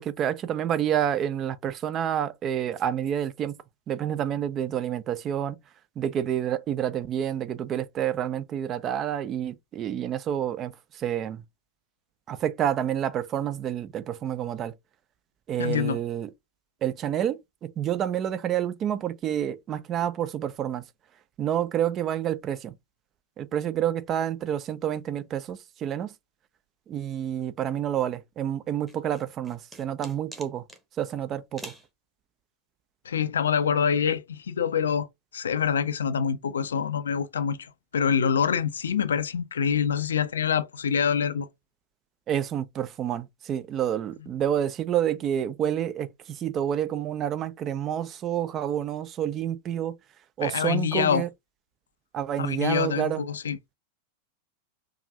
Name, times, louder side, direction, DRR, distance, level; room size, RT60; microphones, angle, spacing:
voice 1, 0.0-3.5 3.9-5.6 6.0-11.4 12.3-14.7 15.5-16.3 16.8-20.8 21.4-22.7 23.4-26.1 26.9-30.6 31.0-31.7 42.3-49.9 50.4-51.3 52.1-53.2, right 10 dB, 30° right, 0.4 m, -28 dB
voice 2, 15.6-16.0 33.1-35.1 35.3-41.5 50.4-51.3 52.4-53.6, left 7 dB, 65° left, 0.4 m, -26 dB
sound 1, 28.9-30.8 31.6-31.9, right 2 dB, 10° right, 1.0 m, -44 dB
4.8 x 2.6 x 2.4 m
figure-of-eight pair, 90°, 0 cm